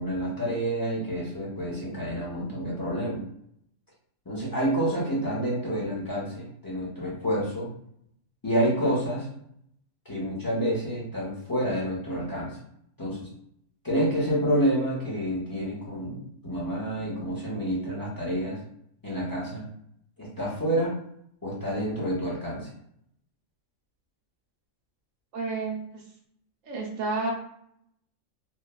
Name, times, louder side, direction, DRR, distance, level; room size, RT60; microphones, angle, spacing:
voice 1, 0.0-3.2 4.3-7.7 8.4-9.3 10.1-12.6 13.0-13.3 13.8-18.6 19.0-19.6 20.2-20.9 21.4-22.7, equal, 25° left, -6 dB, 0.5 m, -28 dB
voice 2, 25.3-26.0 26.6-27.3, right 3 dB, 75° right, -3 dB, 0.9 m, -30 dB
3.0 x 2.1 x 2.2 m, 0.72 s
omnidirectional pair, 1.4 m